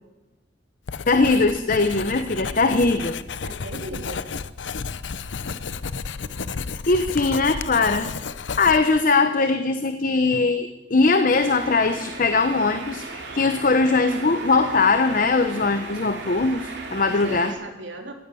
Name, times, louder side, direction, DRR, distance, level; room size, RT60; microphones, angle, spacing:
Writing, 0.9-9.1, left 5 dB, 85° left, 0.7 m, -32 dB
voice 1, 1.1-3.2 6.9-8.1 8.6-17.5, left 3 dB, 50° left, 9 dB, 0.9 m, -20 dB
voice 2, 3.4-4.2 17.0-18.1, right 1 dB, 85° right, 3 dB, 3.0 m, -36 dB
sound 1, 11.3-17.5, right 3 dB, 65° right, 3.1 m, -37 dB
16.0 x 10.5 x 8.4 m, 1.1 s
head